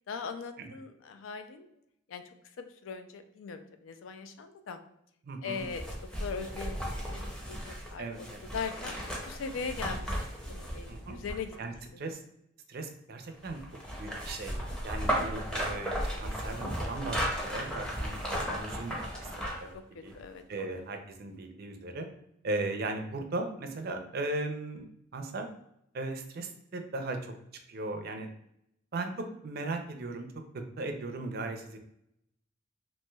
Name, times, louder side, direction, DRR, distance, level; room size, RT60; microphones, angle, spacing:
voice 1, 0.1-1.7 2.1-2.2 2.6-4.8 5.4-5.9 6.2-6.8 7.1-8.3 8.5-9.0 9.3-10.2 10.5-11.5 15.4-15.5 20.1-20.7, left 5 dB, 80° left, 8 dB, 0.4 m, -40 dB
voice 2, 5.2-5.6 8.0-8.4 10.9-11.2 11.6-12.2 12.7-13.6 14.0-14.5 14.8-15.9 16.2-19.7 20.0-20.1 20.5-22.1 22.4-24.9 25.1-25.5 25.9-27.3 27.7-28.3 28.9-29.1 29.4-30.3 30.8-31.8, right 2 dB, 50° right, 5 dB, 0.4 m, -37 dB
sound 1, 5.6-11.8 13.4-19.7 20.1-20.2, equal, 5° left, 0.6 m, -35 dB
3.1 x 3.0 x 2.2 m, 0.76 s
head